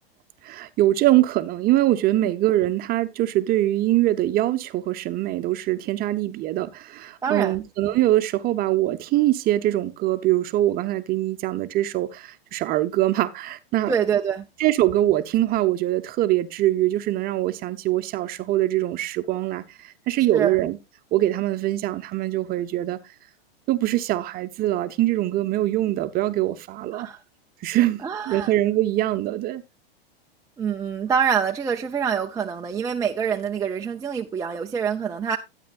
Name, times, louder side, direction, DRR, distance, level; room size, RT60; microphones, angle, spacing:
voice 1, 0.4-13.9 14.6-20.8 21.1-23.0 23.7-27.1 27.6-29.6, right 15 dB, 30° right, 0.8 m, -23 dB
voice 2, 7.2-7.6 13.9-14.4 20.3-20.5 26.9-27.2 28.0-28.5 30.6-35.4, right 7 dB, 10° right, 0.4 m, -25 dB
12.5 x 9.2 x 2.5 m
hypercardioid pair, 125°, 30 cm